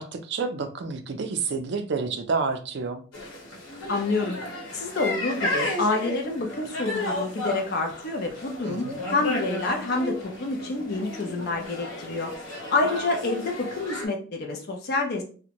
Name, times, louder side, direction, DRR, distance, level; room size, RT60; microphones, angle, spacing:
voice 1, 0.0-3.0 8.6-9.0, right 4 dB, 55° right, 7 dB, 0.4 m, -29 dB
sound 1, 3.1-14.1, left 1 dB, 70° left, 1.0 m, -33 dB
voice 2, 3.9-4.4 4.7-15.2, left 3 dB, 50° left, 3 dB, 0.5 m, -28 dB
2.5 x 2.1 x 2.8 m, 0.39 s
head